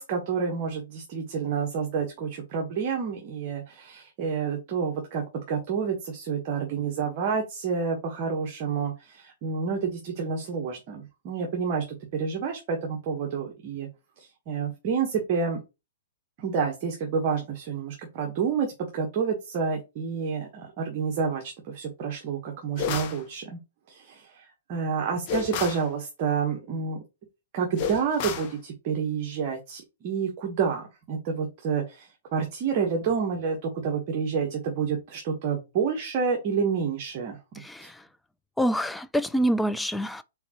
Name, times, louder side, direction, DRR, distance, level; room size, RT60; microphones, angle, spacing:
voice 1, 0.0-11.8 12.1-13.9 14.2-15.6 16.4-23.6 23.9-27.0 27.5-37.4 37.8-37.9, right 6 dB, 40° right, 1.1 m, -29 dB
sound 1, 22.8-23.2 25.3-25.9 27.8-28.5, left 7 dB, 40° left, 1.0 m, -31 dB
voice 2, 37.5-38.1 38.6-40.2, equal, 5° left, 0.3 m, -26 dB
4.2 x 3.9 x 2.9 m
hypercardioid pair, 120°, 0 cm